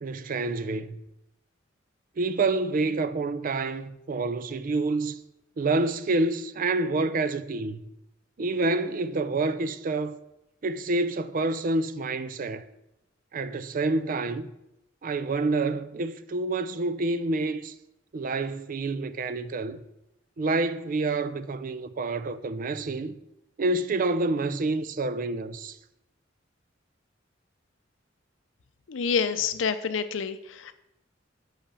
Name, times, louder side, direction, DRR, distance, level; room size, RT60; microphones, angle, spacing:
voice 1, 0.0-1.0 2.2-5.2 5.6-7.8 8.4-10.2 10.6-12.6 13.3-14.5 15.0-17.7 18.1-19.8 20.4-23.2 23.6-25.8, right 3 dB, 45° right, 0.5 m, -28 dB
voice 2, 28.9-30.7, left 6 dB, 85° left, 0.5 m, -28 dB
5.7 x 5.7 x 6.9 m
head